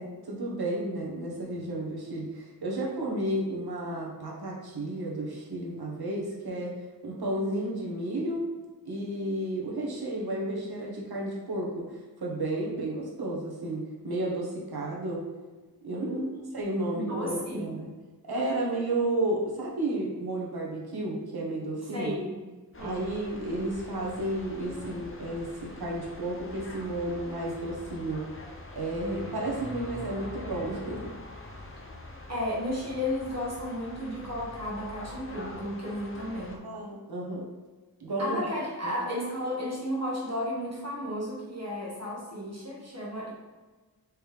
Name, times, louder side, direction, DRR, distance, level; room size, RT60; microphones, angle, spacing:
voice 1, 0.0-6.8 7.0-8.5 8.8-15.3 15.8-16.2 16.5-17.9 18.2-22.1 22.8-28.2 28.7-31.1 36.6-37.5 38.0-38.5 38.8-38.9, right 1 dB, 75° right, -3 dB, 1.1 m, -32 dB
voice 2, 16.0-16.4 16.9-17.7 21.9-22.4 22.8-23.1 32.3-36.6 38.2-43.3, left 1 dB, 40° right, -4 dB, 1.3 m, -33 dB
sound 1, 22.7-36.6, left 2 dB, 35° left, 0.6 m, -44 dB
4.6 x 3.3 x 3.4 m, 1.3 s
wide cardioid pair, 70°, 38 cm